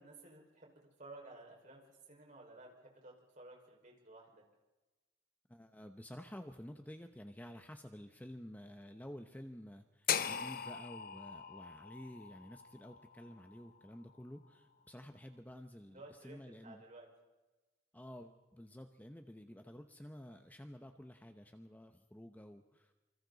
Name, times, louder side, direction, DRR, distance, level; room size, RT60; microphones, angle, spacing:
voice 1, 0.0-1.8 2.1-4.4 15.9-17.1, right 2 dB, 40° right, 0 dB, 5.3 m, -55 dB
voice 2, 5.5-16.8 17.9-22.9, equal, 10° left, 6 dB, 0.9 m, -51 dB
sound 1, 10.1-14.2, left 8 dB, 50° left, 0.8 m, -40 dB
27.5 x 25.5 x 4.1 m, 1.1 s
head